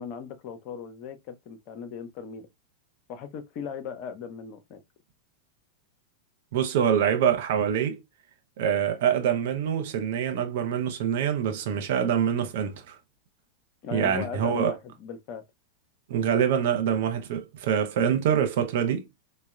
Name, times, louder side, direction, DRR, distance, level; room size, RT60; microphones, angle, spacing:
voice 1, 0.0-2.5 3.1-4.8 13.8-15.4, left 6 dB, 40° left, 0.5 m, -37 dB
voice 2, 6.5-8.0 8.6-13.0 13.9-14.7 16.1-19.0, right 8 dB, 55° right, 0.5 m, -25 dB
3.5 x 2.0 x 2.2 m
figure-of-eight pair, 90°, 0 cm